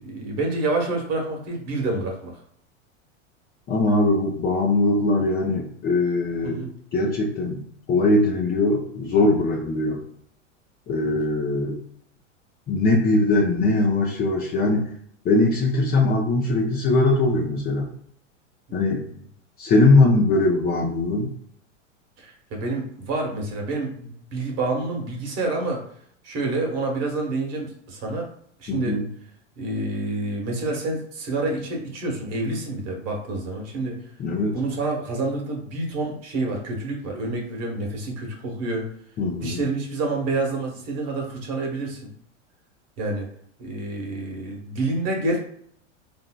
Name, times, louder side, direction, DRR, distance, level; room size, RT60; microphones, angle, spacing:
voice 1, 0.0-2.4 6.4-6.7 11.0-11.1 18.7-19.0 22.2-25.8 26.2-28.3 28.6-29.0 29.6-34.0 34.5-38.9 39.4-42.0 43.0-43.3 43.6-45.4, right 2 dB, 40° right, 0 dB, 1.2 m, -28 dB
voice 2, 3.7-6.6 6.9-10.0 10.9-11.8 12.7-14.9 15.2-17.9 18.7-19.0 19.6-21.3 28.7-29.0 34.2-34.6 39.2-39.6, left 2 dB, 25° left, -2 dB, 0.6 m, -21 dB
3.7 x 2.6 x 2.2 m, 0.65 s
hypercardioid pair, 105°, 38 cm